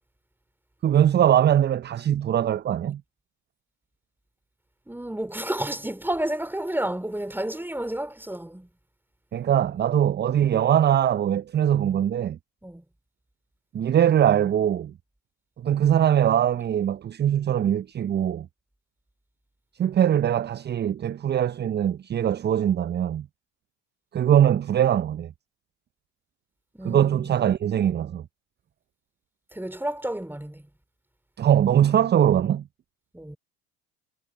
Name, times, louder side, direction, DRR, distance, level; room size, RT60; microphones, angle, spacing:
voice 1, 0.8-3.0 9.3-12.4 13.7-14.9 15.6-18.5 19.8-23.3 24.1-25.3 26.8-28.2 31.4-32.6, right 10 dB, 20° right, 0.6 m, -22 dB
voice 2, 4.9-8.7 12.6-12.8 26.7-27.3 29.5-30.6 33.1-33.4, right 1 dB, 5° right, 3.3 m, -31 dB
figure-of-eight pair, 65°, 48 cm